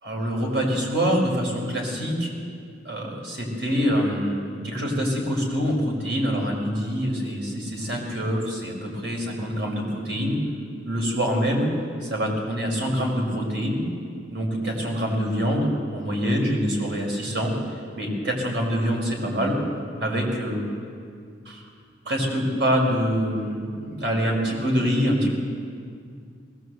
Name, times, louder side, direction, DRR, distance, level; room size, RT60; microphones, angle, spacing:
voice 1, 0.0-2.3 2.8-10.4 10.8-11.7 12.0-13.8 14.3-19.6 20.0-20.6 21.5-21.6 22.1-25.4, equal, 65° right, 0 dB, 5.6 m, -25 dB
20.5 x 18.5 x 8.1 m, 2.2 s
head